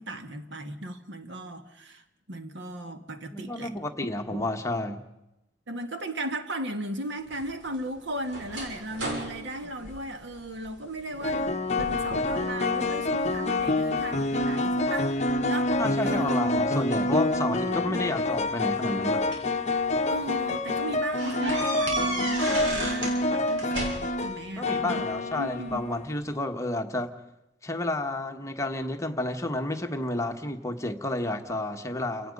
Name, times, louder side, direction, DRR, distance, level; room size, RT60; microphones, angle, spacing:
voice 1, 0.0-3.7 4.3-4.4 5.7-15.2 15.4-16.4 17.5-18.0 20.1-25.1 25.3-25.8, right 1 dB, 65° right, 1.7 m, -37 dB
voice 2, 3.3-5.0 15.8-19.3 24.6-27.1 27.6-32.3, left 1 dB, 15° left, 1.3 m, -31 dB
sound 1, 7.3-10.7 11.1-11.5 11.8-12.5 12.9-13.6 14.2-15.7 16.8-16.9 18.1-19.6 20.1-20.2 20.5-20.6 21.2-23.2 23.5-24.3, right 1 dB, 90° right, 6.8 m, -34 dB
sound 2, 9.6-10.0 11.2-26.1, left 2 dB, 35° left, 0.9 m, -27 dB
29.5 x 18.0 x 5.4 m
head